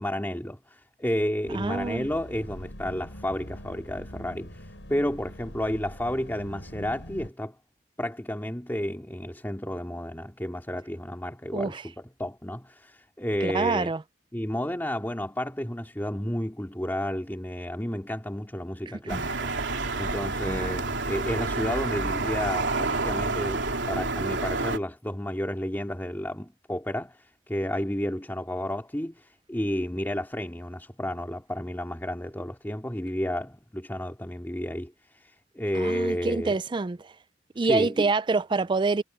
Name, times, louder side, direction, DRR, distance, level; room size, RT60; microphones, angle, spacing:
voice 1, 0.0-7.6 8.0-13.9 14.3-36.6 37.6-38.0, left 1 dB, 10° left, 2.4 m, -32 dB
sound 1, 1.4-7.3, equal, 85° left, 6.8 m, -43 dB
voice 2, 1.5-2.1 11.5-11.8 13.4-14.0 19.1-19.3 20.5-20.8 35.7-37.1 37.6-39.0, right 3 dB, 25° right, 0.4 m, -26 dB
sound 2, 19.1-24.8, right 3 dB, 90° right, 3.2 m, -29 dB
head